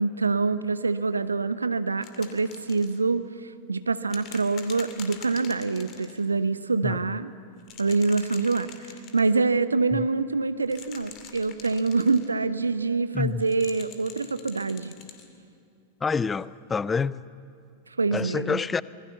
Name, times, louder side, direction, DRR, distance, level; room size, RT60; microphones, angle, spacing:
voice 1, 0.0-7.3 7.8-14.9 18.0-18.6, right 4 dB, 80° right, 0.8 m, -25 dB
Spray Paint Shake, 2.0-3.0 4.1-6.2 7.6-9.3 10.6-12.3 13.4-15.3 16.4-16.5, left 8 dB, 35° left, 2.4 m, -45 dB
voice 2, 16.0-17.2 18.1-18.8, left 5 dB, 15° left, 0.5 m, -27 dB
25.5 x 20.5 x 7.1 m
figure-of-eight pair, 90°, 0 cm